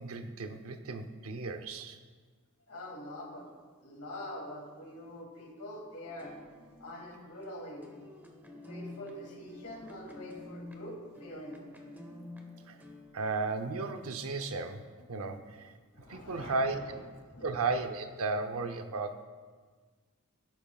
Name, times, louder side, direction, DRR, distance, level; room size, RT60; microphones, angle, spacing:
voice 1, 0.0-2.0 12.7-12.8 13.1-15.7 16.1-16.8 17.4-19.2, right 3 dB, 70° right, 7 dB, 0.7 m, -34 dB
voice 2, 2.7-3.5 3.8-6.4 6.8-7.9 8.6-11.6 15.9-17.0 17.3-17.6, left 1 dB, 85° left, -1 dB, 2.4 m, -44 dB
sound 1, 6.0-13.7, left 2 dB, 10° right, 0.9 m, -50 dB
16.5 x 8.8 x 2.4 m, 1.5 s
head